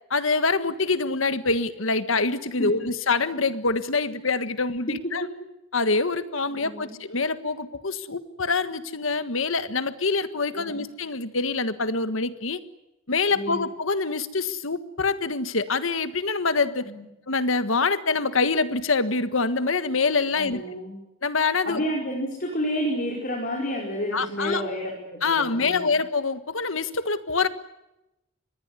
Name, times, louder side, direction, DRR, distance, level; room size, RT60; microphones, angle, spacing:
voice 1, 0.1-5.2 5.7-12.6 13.1-16.9 17.3-20.6 21.2-21.8 24.1-24.6 25.2-27.5, left 4 dB, 70° left, 12 dB, 1.5 m, -25 dB
voice 2, 4.9-5.3 6.5-7.0 10.5-10.8 13.3-13.6 16.8-17.1 20.4-21.0 21.7-26.0, equal, 45° left, -1 dB, 5.2 m, -30 dB
25.5 x 20.5 x 9.7 m, 0.94 s
head